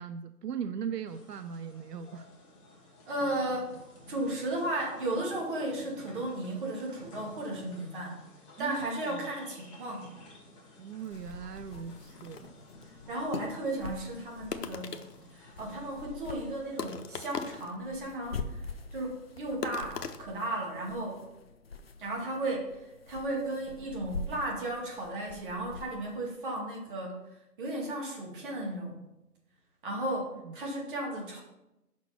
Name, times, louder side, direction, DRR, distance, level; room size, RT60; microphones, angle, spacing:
voice 1, 0.0-2.3 8.6-9.3 10.8-12.5 29.9-30.0 30.4-30.5, right 7 dB, 85° right, 10 dB, 0.6 m, -39 dB
sound 1, 1.0-17.6, left 1 dB, 20° left, 1.2 m, -54 dB
voice 2, 3.1-3.7 4.1-8.2 8.6-10.1 13.1-15.0 15.3-21.2 22.0-27.2 27.6-29.0 29.8-31.4, right 1 dB, 35° right, -2 dB, 2.1 m, -35 dB
sound 2, 10.6-10.7 10.9-12.4 12.8-12.9 14.5-15.4 15.9-16.0 16.8-17.8 18.1-18.2 19.6-20.2, left 6 dB, 80° left, 0.9 m, -40 dB
sound 3, 11.1-26.3, left 3 dB, 40° left, 0.5 m, -45 dB
5.8 x 4.4 x 5.8 m, 0.92 s
figure-of-eight pair, 150°, 47 cm